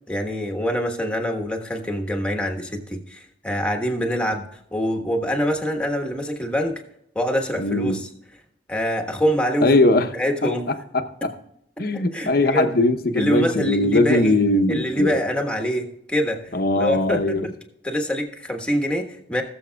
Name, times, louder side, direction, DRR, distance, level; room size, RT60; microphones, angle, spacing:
voice 1, 0.1-4.4 4.7-6.8 7.1-8.1 8.7-9.7 10.1-10.6 11.9-12.7 13.1-14.4 14.7-16.4 16.7-17.5 17.8-19.4, equal, 5° left, 3 dB, 1.3 m, -25 dB
voice 2, 7.6-8.0 9.6-10.1 10.9-11.3 11.8-15.2 16.5-17.5, left 2 dB, 55° left, 7 dB, 0.8 m, -20 dB
19.5 x 7.1 x 2.3 m, 0.77 s
head